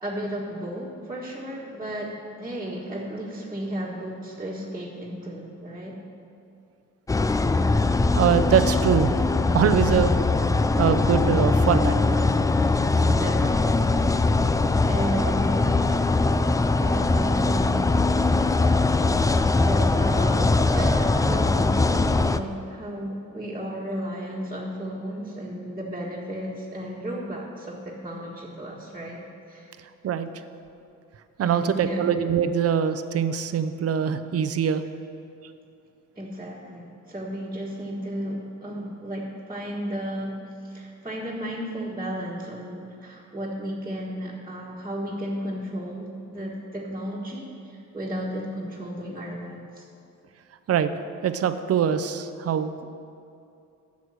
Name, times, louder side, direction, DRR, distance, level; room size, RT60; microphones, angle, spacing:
voice 1, 0.0-6.0 13.1-14.1 14.8-15.7 16.4-18.0 19.6-29.7 31.4-32.0 36.1-40.4 40.6-49.8, equal, 15° right, -7 dB, 1.7 m, -34 dB
sound 1, 7.1-22.4, left 3 dB, 10° left, 0.3 m, -21 dB
voice 2, 8.1-9.2 9.5-10.1 10.8-12.0 15.1-15.2 30.0-30.3 31.4-34.8 50.7-50.9 51.2-52.8, right 8 dB, 50° right, 11 dB, 0.7 m, -23 dB
11.0 x 7.0 x 6.4 m, 2.6 s
cardioid pair, 90°, 30 cm